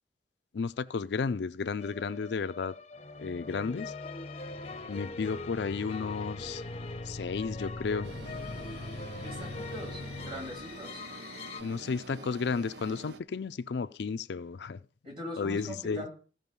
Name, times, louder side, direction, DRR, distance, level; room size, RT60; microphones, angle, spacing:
voice 1, 0.5-2.8 3.2-3.9 4.9-6.6 7.1-8.1 11.6-14.8 15.4-16.0, left 5 dB, 75° left, 0.4 m, -33 dB
sound 1, 1.8-11.6, left 3 dB, 35° left, 0.7 m, -41 dB
sound 2, 8.0-13.2, right 3 dB, 75° right, 0.7 m, -47 dB
voice 2, 9.2-11.0 15.0-16.1, equal, 30° right, 3.5 m, -42 dB
15.0 x 5.3 x 5.4 m
head